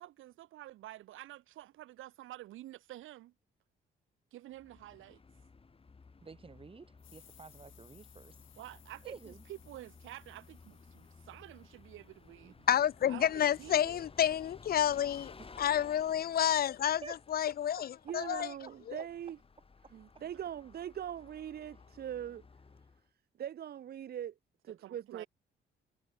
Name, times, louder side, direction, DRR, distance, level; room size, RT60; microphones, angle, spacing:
voice 1, 0.0-3.3 4.3-5.2 8.6-12.5 13.1-14.0 24.7-25.3, right 15 dB, 85° right, 2.0 m, -49 dB
Bus, 4.5-23.1, left 4 dB, 30° left, 2.4 m, -57 dB
voice 2, 6.2-8.6 9.0-9.4 15.4-15.8 17.0-17.2 19.8-19.9, right 4 dB, 30° right, 1.5 m, -51 dB
sound 1, 7.0-12.3, left 13 dB, 80° left, 6.0 m, -63 dB
voice 3, 12.7-17.0 17.3-18.5 18.9-19.0, left 10 dB, 50° left, 0.5 m, -30 dB
voice 4, 18.1-19.4 19.9-22.4 23.4-24.3 24.6-25.2, right 10 dB, 50° right, 0.7 m, -41 dB
cardioid pair, 90°, 20 cm